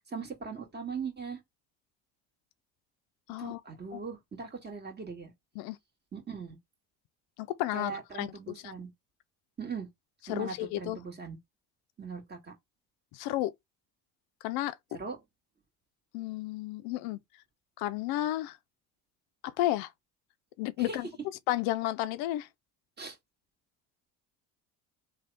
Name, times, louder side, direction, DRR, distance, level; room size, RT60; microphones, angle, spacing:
voice 1, 0.1-1.4 3.4-5.3 6.1-6.6 7.7-8.9 9.6-9.9 10.3-11.4 12.0-12.5 14.9-15.2 20.8-21.0 23.0-23.2, right 5 dB, 25° right, 1.6 m, -40 dB
voice 2, 3.3-3.6 3.9-4.0 5.6-5.8 7.4-7.9 8.2-8.3 8.6-8.7 10.3-11.0 13.1-13.5 14.4-14.7 16.1-17.2 17.8-18.6 19.4-19.9 20.6-21.1 21.5-22.5, left 15 dB, 80° left, 0.5 m, -32 dB
3.3 x 2.3 x 4.0 m
supercardioid pair, 90°, 37 cm